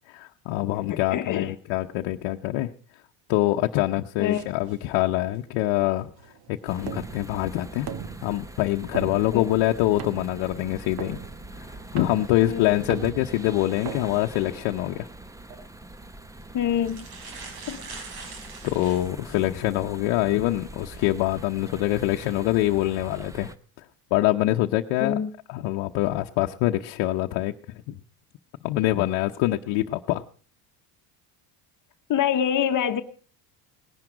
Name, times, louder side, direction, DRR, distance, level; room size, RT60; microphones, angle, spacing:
voice 1, 0.1-2.7 3.3-6.1 6.5-7.9 8.2-11.2 11.9-15.1 18.6-23.5 24.1-25.2 25.5-27.5 27.9-28.0 28.6-30.2, left 16 dB, 75° left, 2 dB, 0.9 m, -25 dB
voice 2, 0.9-1.5 4.2-4.4 9.3-9.5 12.4-12.9 16.5-17.1 17.7-17.8 25.0-25.3 32.1-33.0, left 9 dB, 45° left, 8 dB, 1.0 m, -26 dB
sound 1, 4.3-15.0, right 7 dB, 55° right, 1.6 m, -41 dB
sound 2, 6.7-23.6, right 2 dB, 5° right, 0.7 m, -43 dB
sound 3, 15.4-15.6 16.4-16.5 16.8-19.6 20.1-20.2 22.1-22.3 22.9-23.2, right 4 dB, 75° right, 4.6 m, -42 dB
19.0 x 11.0 x 5.0 m, 0.40 s
supercardioid pair, 105°, 44 cm